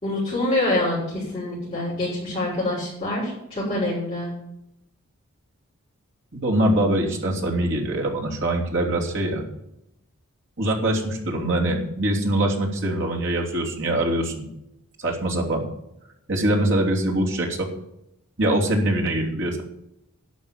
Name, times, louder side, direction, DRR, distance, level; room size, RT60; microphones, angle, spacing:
voice 1, 0.0-4.3, left 1 dB, 25° left, -10 dB, 6.3 m, -26 dB
voice 2, 6.3-9.4 10.6-14.5 15.0-15.6 16.3-17.7 18.4-19.6, right 1 dB, 55° right, -1 dB, 3.1 m, -23 dB
12.0 x 6.7 x 8.9 m, 0.82 s
head